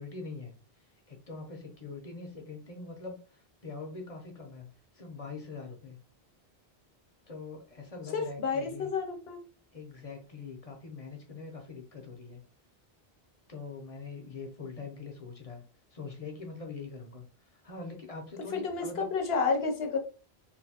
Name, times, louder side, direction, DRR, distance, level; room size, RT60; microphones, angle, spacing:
voice 1, 0.0-6.0 7.3-8.9 9.7-12.4 13.5-15.6 15.9-19.1, left 4 dB, 40° left, 3 dB, 0.6 m, -43 dB
voice 2, 8.1-9.4 18.5-20.0, left 5 dB, 70° left, 4 dB, 1.0 m, -30 dB
3.1 x 2.6 x 2.7 m, 0.38 s
omnidirectional pair, 1.1 m